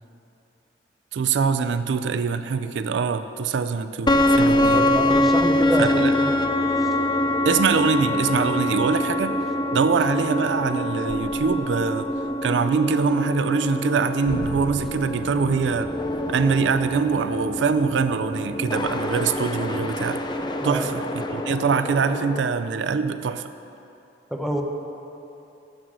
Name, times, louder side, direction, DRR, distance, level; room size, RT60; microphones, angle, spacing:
voice 1, 1.1-4.9 5.8-6.1 7.5-9.3 9.7-12.1 12.4-15.9 16.3-20.2 20.6-23.5, right 5 dB, 80° right, 10 dB, 0.4 m, -23 dB
sound 1, 4.1-22.4, left 1 dB, 25° left, 0.5 m, -24 dB
voice 2, 4.7-6.3 6.8-6.9 20.6-20.9 24.3-24.6, equal, ahead, 1 dB, 0.8 m, -26 dB
9.8 x 7.9 x 6.2 m, 2.9 s
head